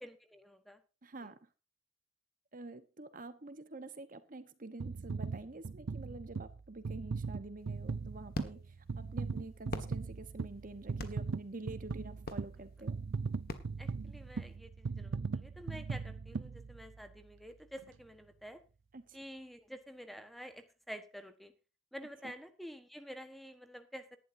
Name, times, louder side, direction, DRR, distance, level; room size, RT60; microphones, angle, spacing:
voice 1, 0.0-0.8 1.2-1.3 13.8-18.6 19.1-21.5 21.9-24.1, equal, ahead, 8 dB, 1.2 m, -49 dB
voice 2, 1.0-1.5 2.5-12.9 18.9-19.2 22.2-22.3, right 2 dB, 45° right, 11 dB, 1.0 m, -47 dB
sound 1, 4.8-17.2 17.8-17.9, right 4 dB, 75° right, 0.5 m, -39 dB
sound 2, 7.6-14.6, left 1 dB, 50° left, 1.5 m, -47 dB
18.0 x 11.5 x 2.7 m, 0.31 s
head